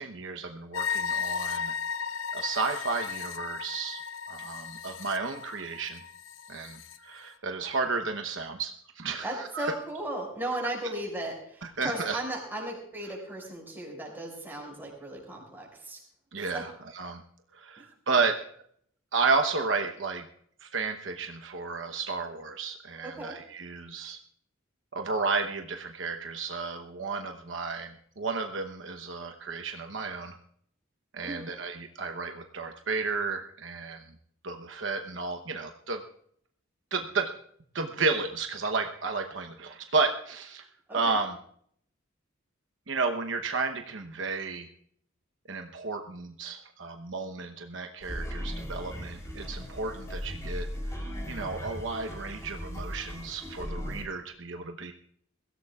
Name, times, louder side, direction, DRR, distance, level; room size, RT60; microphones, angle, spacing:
voice 1, 0.0-1.7 2.3-4.0 4.3-6.0 6.5-9.7 11.6-12.2 16.3-17.2 17.5-18.4 19.1-20.3 20.6-24.2 24.9-30.4 31.1-34.0 34.4-36.0 36.9-37.3 37.7-40.7 40.9-41.4 42.9-44.7 45.5-54.9, right 4 dB, 65° right, 5 dB, 1.0 m, -32 dB
sound 1, 0.7-7.0, left 6 dB, 70° left, 0.9 m, -35 dB
voice 2, 9.2-16.0 16.5-16.6 17.8-17.9 23.0-23.4 31.2-31.5 40.9-41.2, right 1 dB, 10° right, -1 dB, 5.9 m, -36 dB
sound 2, 48.0-54.0, equal, 15° left, 3.4 m, -37 dB
22.5 x 16.0 x 2.4 m, 0.64 s
head